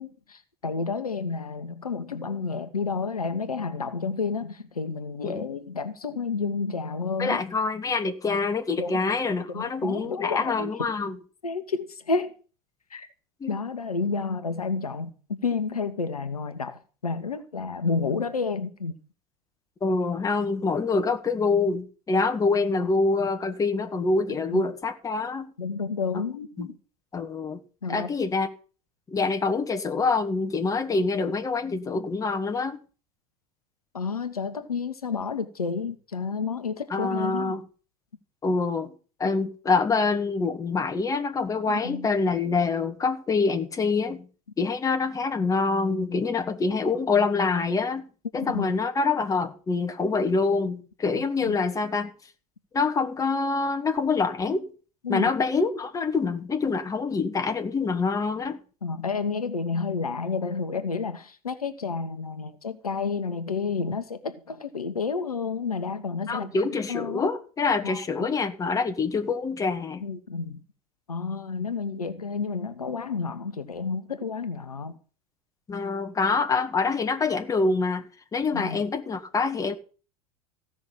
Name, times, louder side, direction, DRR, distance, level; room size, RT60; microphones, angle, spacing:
voice 1, 0.0-7.4 8.8-9.0 9.5-10.7 11.4-12.3 12.9-13.1 13.5-15.1 15.4-18.9 24.5-24.6 25.6-26.8 27.8-28.1 33.9-37.5 41.7-42.1 48.4-48.8 51.4-51.6 55.0-55.3 58.8-66.5 66.9-67.3 67.8-68.3 70.0-70.6 71.1-75.0 78.5-78.8, left 4 dB, 75° left, 1.4 m, -30 dB
voice 2, 7.2-11.2 13.4-13.6 19.8-25.5 26.6-26.7 27.1-27.6 27.9-28.5 29.1-32.8 36.9-37.6 38.4-38.9 39.2-44.3 44.6-48.0 48.3-52.1 52.7-54.7 55.1-58.6 66.3-70.0 75.7-78.0 78.3-79.7, left 4 dB, 20° left, 1.8 m, -26 dB
15.5 x 6.2 x 8.7 m
figure-of-eight pair, 80°, 19 cm